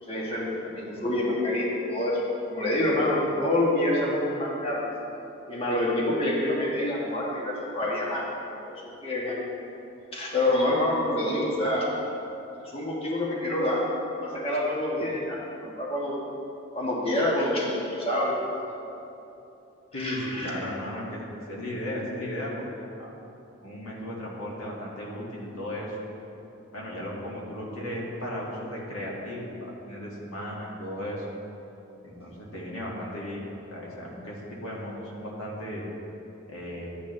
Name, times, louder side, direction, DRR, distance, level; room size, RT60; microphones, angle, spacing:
voice 1, 0.0-2.2 2.5-4.8 5.5-8.2 8.6-9.4 10.1-11.9 12.6-13.8 14.2-16.2 16.7-18.3 19.9-20.5, left 1 dB, 25° left, -4 dB, 1.3 m, -27 dB
voice 2, 19.9-23.1 23.6-26.0 26.7-31.3 32.0-33.4 33.7-35.8 36.5-36.9, left 1 dB, 90° left, -4 dB, 2.0 m, -35 dB
12.0 x 8.6 x 3.3 m, 2.9 s
head